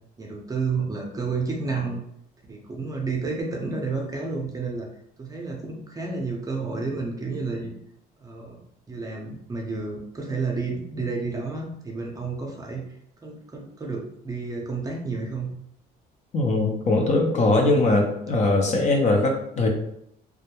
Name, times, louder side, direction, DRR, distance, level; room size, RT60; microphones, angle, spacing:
voice 1, 0.2-2.0 2.5-4.9 5.2-7.7 8.2-8.6 8.9-12.8 13.2-15.5, right 4 dB, 20° right, 0 dB, 0.6 m, -30 dB
voice 2, 16.3-19.7, left 2 dB, 45° left, 2 dB, 0.6 m, -21 dB
2.2 x 2.1 x 2.9 m, 0.73 s
cardioid pair, 110°, 17 cm